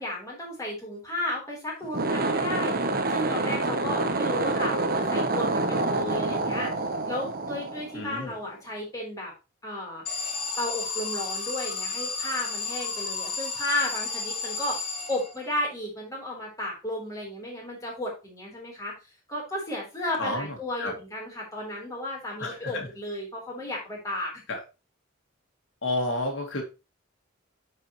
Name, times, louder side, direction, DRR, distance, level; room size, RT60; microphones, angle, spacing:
voice 1, 0.0-2.8 3.1-6.7 7.1-9.3 9.6-10.0 10.6-14.8 15.1-18.9 19.3-24.3, left 1 dB, 15° left, -3 dB, 3.6 m, -33 dB
sound 1, 1.8-8.4, right 2 dB, 45° right, 0.9 m, -27 dB
voice 2, 7.9-8.3 20.2-21.0 22.4-22.9 24.5-24.6 25.8-26.6, left 2 dB, 65° left, 2 dB, 2.1 m, -31 dB
Alarm, 10.1-15.6, left 4 dB, 50° left, 2.4 m, -32 dB
9.5 x 4.9 x 3.0 m, 0.28 s
head